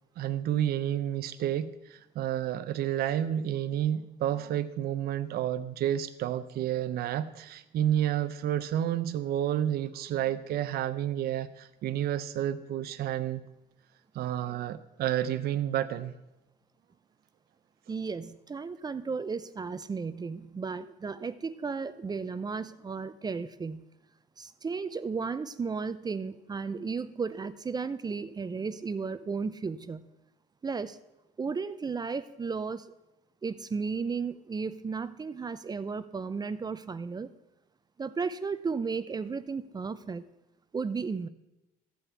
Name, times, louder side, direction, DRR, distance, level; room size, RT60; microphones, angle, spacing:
voice 1, 0.2-13.4 14.1-16.1, right 11 dB, 65° right, 11 dB, 0.7 m, -30 dB
voice 2, 17.9-23.8 24.4-30.0 30.6-31.0 31.4-32.9 33.4-37.3 38.0-40.3 40.7-41.3, right 5 dB, 25° right, 13 dB, 0.6 m, -34 dB
14.0 x 5.8 x 8.2 m, 0.94 s
cardioid pair, 110°, 17 cm